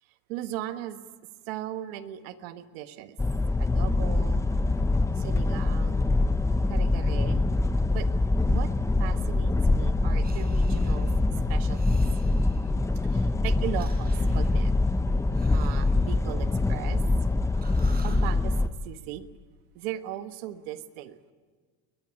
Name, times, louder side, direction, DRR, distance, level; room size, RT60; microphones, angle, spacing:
voice 1, 0.3-1.0 1.5-3.2 3.6-4.5 5.1-6.1 6.7-7.5 7.9-8.1 8.5-8.7 9.0-11.1 11.5-12.0 13.0-14.7 15.5-17.0 18.0-18.6 18.8-19.3 19.7-21.2, right 12 dB, 85° right, 10 dB, 1.5 m, -38 dB
sound 1, 3.2-18.7, left 2 dB, 10° left, 0.9 m, -24 dB
Breathing, 10.2-11.2 11.7-12.9 13.6-17.2 17.5-18.4, right 5 dB, 30° right, 4.5 m, -53 dB
21.5 x 20.5 x 9.9 m, 1.5 s
supercardioid pair, 105°, 30 cm